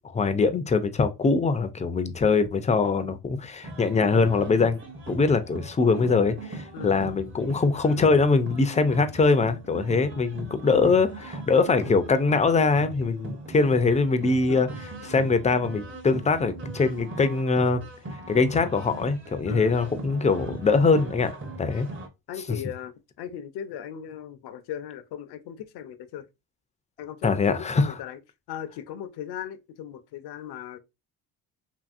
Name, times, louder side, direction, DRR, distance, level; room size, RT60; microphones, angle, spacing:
voice 1, 0.1-4.8 5.1-14.7 15.0-17.8 18.3-21.3 21.6-21.9 22.5-22.6 27.2-27.9, left 4 dB, 20° left, 0.4 m, -22 dB
sound 1, 3.6-22.1, right 2 dB, 30° right, 0.8 m, -39 dB
voice 2, 19.5-20.0 22.3-26.3 27.0-28.2 28.5-30.8, left 9 dB, 70° left, 0.6 m, -38 dB
2.8 x 2.7 x 2.4 m
cardioid pair, 80°, 41 cm